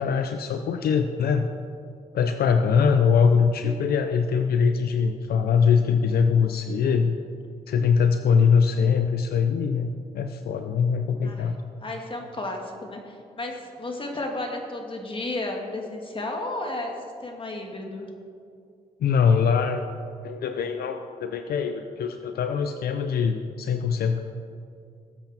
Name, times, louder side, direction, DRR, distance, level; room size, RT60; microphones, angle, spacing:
voice 1, 0.0-1.5 2.1-7.2 7.7-9.9 10.1-11.6 19.0-19.9 20.2-24.2, left 6 dB, 75° left, 7 dB, 0.6 m, -22 dB
voice 2, 11.8-16.9 17.2-18.1, left 2 dB, 35° left, 2 dB, 2.4 m, -33 dB
19.0 x 8.0 x 4.4 m, 2.4 s
cardioid pair, 70°, 16 cm